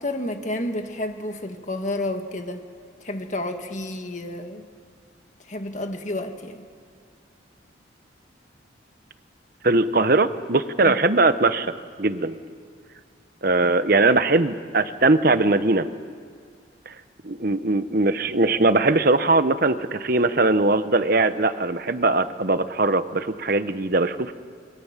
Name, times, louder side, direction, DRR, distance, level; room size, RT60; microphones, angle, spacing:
voice 1, 0.0-2.6 3.0-4.7 5.5-6.6 10.8-11.0, left 1 dB, 40° left, 5 dB, 1.7 m, -30 dB
voice 2, 9.6-11.7 12.0-12.4 13.4-15.9 17.2-24.3, right 2 dB, 50° right, 11 dB, 1.1 m, -20 dB
27.0 x 23.0 x 7.5 m, 2.1 s
head